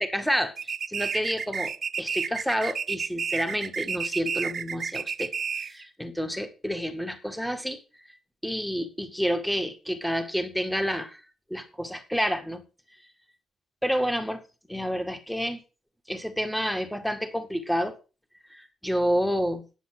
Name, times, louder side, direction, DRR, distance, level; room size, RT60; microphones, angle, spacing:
voice 1, 0.0-5.3 5.6-7.8 8.4-11.2 11.5-12.6 13.8-14.4 14.7-15.6 16.1-17.9 18.5-19.6, equal, ahead, 8 dB, 2.1 m, -29 dB
sound 1, 0.6-5.8, right 6 dB, 45° right, 0.5 m, -31 dB
10.0 x 7.6 x 7.8 m, 0.33 s
cardioid pair, 120°, 0 cm